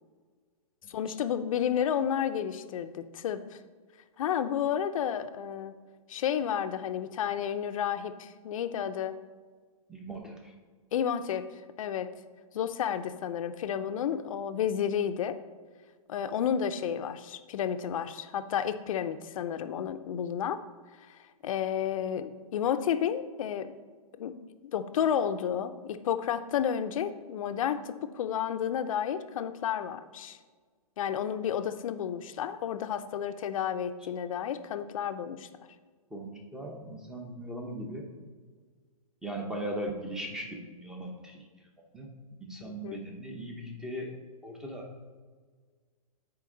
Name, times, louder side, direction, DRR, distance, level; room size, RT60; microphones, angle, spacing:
voice 1, 0.9-3.6 4.2-5.8 6.1-9.2 10.9-11.5 11.8-12.1 12.5-15.4 16.1-20.6 21.1-21.2 21.4-23.7 24.2-24.3 24.6-30.4 31.0-35.5 42.6-43.0, left 9 dB, 60° left, 10 dB, 0.6 m, -31 dB
voice 2, 9.9-10.5 36.1-38.1 39.2-41.4 41.9-42.1 42.4-44.1 44.4-44.9, right 1 dB, 5° right, 1 dB, 0.8 m, -38 dB
9.7 x 4.5 x 3.9 m, 1.5 s
hypercardioid pair, 145°, 20 cm